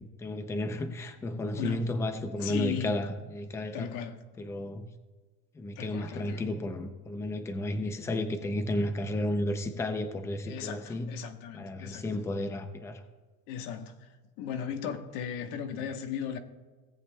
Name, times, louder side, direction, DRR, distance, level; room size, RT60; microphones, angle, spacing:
voice 1, 0.0-3.9 4.4-4.9 5.6-11.1 11.5-13.0, left 1 dB, 10° left, 0.4 m, -33 dB
voice 2, 1.5-1.9 2.4-3.0 3.7-4.2 5.7-6.5 10.5-12.2 13.5-16.4, left 8 dB, 75° left, 1.2 m, -37 dB
17.5 x 8.0 x 2.3 m
cardioid pair, 170°, 36 cm